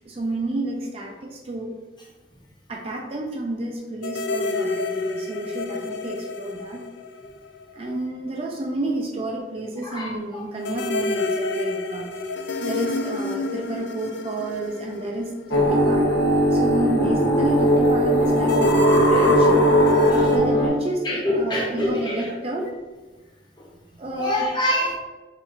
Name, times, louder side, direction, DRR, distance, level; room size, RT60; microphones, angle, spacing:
voice 1, 0.1-1.7 2.7-6.8 7.7-12.1 12.6-19.5 20.1-22.7 24.0-24.5, right 2 dB, 30° right, 1 dB, 0.3 m, -30 dB
sound 1, 4.0-7.8 8.0-8.1 10.6-16.0 18.4-20.4, left 2 dB, 70° left, 0.3 m, -29 dB
voice 2, 9.8-10.4 15.1-15.2 15.6-15.7 19.1-19.2 19.7-20.2 21.0-22.2 24.2-25.0, left 1 dB, 25° left, -3 dB, 0.8 m, -26 dB
sound 2, 15.5-20.7, equal, 85° left, 0.9 m, -18 dB
3.0 x 2.4 x 4.1 m, 1.2 s
head